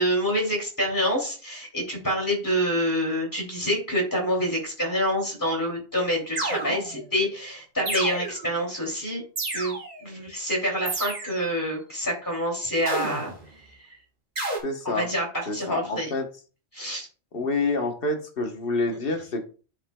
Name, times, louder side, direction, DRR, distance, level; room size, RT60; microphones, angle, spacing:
voice 1, 0.0-9.2 9.5-13.3 13.8-13.9 14.8-16.1 16.7-17.1, equal, 15° left, -1 dB, 2.7 m, -27 dB
sound 1, 6.4-7.1 7.9-8.6 9.4-10.1 10.9-11.6 12.9-13.5 14.4-14.6, right 2 dB, 40° right, 1.8 m, -31 dB
voice 2, 14.6-15.1 15.5-16.3 17.3-19.4, left 3 dB, 60° left, 5 dB, 1.2 m, -27 dB
10.5 x 5.2 x 2.2 m, 0.37 s
omnidirectional pair, 1.1 m